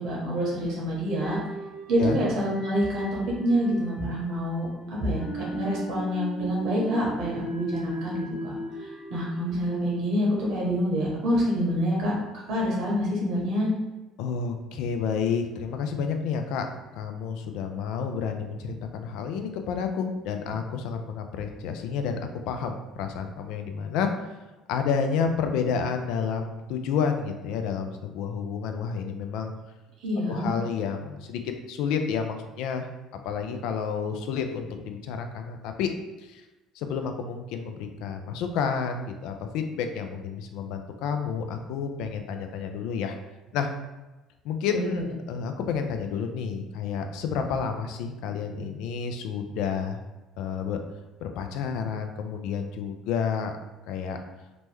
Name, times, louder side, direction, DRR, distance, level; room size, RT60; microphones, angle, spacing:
voice 1, 0.0-1.4 1.9-4.7 5.0-8.5 8.8-12.1 12.5-13.7 30.0-30.5 44.7-45.0, equal, 70° right, -4 dB, 1.1 m, -27 dB
sound 1, 1.2-10.4, right 1 dB, 25° left, 0.7 m, -38 dB
voice 2, 14.2-16.7 16.9-22.2 22.5-24.1 24.7-29.5 30.3-32.9 33.2-35.9 36.2-36.4 36.7-43.2 43.5-43.7 44.4-50.0 50.4-50.8 51.2-53.5 53.9-54.2, left 6 dB, 75° left, 6 dB, 0.3 m, -30 dB
3.0 x 2.1 x 3.3 m, 1.1 s
supercardioid pair, 75°, 0 cm